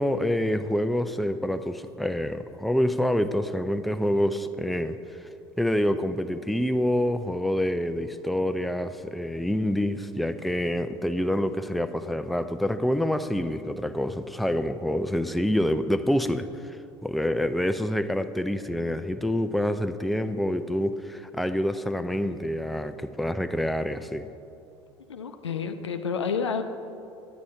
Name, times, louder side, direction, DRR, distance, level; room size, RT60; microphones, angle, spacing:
voice 1, 0.0-5.0 5.6-16.8 17.0-24.3, left 1 dB, ahead, 9 dB, 0.5 m, -27 dB
voice 2, 25.1-26.6, left 6 dB, 90° left, 7 dB, 0.5 m, -29 dB
9.7 x 9.4 x 4.2 m, 2.8 s
hypercardioid pair, 65°, 14 cm